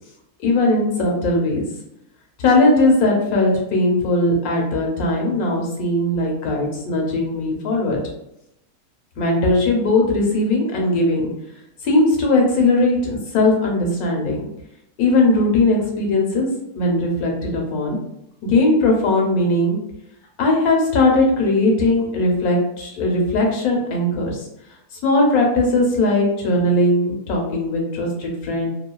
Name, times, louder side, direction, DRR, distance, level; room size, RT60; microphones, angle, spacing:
voice 1, 0.4-1.7 2.4-8.0 9.2-11.3 11.8-14.4 15.0-16.5 16.8-18.0 18.4-19.8 20.4-24.5 25.0-28.7, left 2 dB, 70° left, 0 dB, 1.2 m, -19 dB
2.9 x 2.3 x 2.2 m, 0.82 s
omnidirectional pair, 1.7 m